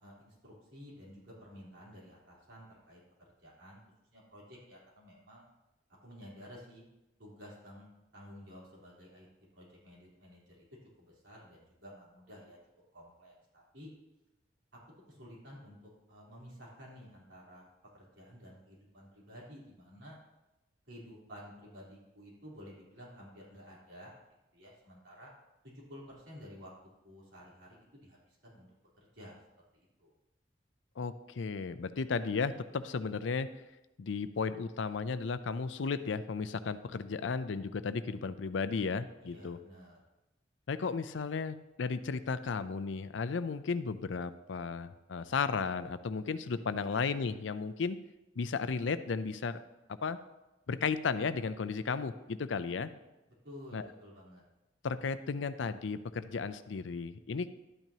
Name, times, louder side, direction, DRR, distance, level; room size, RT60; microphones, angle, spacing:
voice 1, 0.0-3.0 3.4-3.8 4.1-5.4 6.0-6.8 7.2-9.3 9.5-10.7 11.0-12.6 12.9-13.9 14.7-14.8 15.1-15.8 16.1-17.7 17.9-20.2 20.9-24.1 24.5-25.3 25.6-26.7 27.0-28.7 29.0-29.4 29.7-30.1 39.2-40.0 46.8-47.0 53.4-54.4, equal, 85° right, -5 dB, 3.6 m, -52 dB
voice 2, 31.0-33.5 34.0-39.6 40.7-48.0 48.4-49.6 50.0-50.2 50.7-52.9 53.7-53.9 54.8-57.5, left 5 dB, 90° left, 13 dB, 0.5 m, -34 dB
12.0 x 9.0 x 2.8 m, 0.98 s
head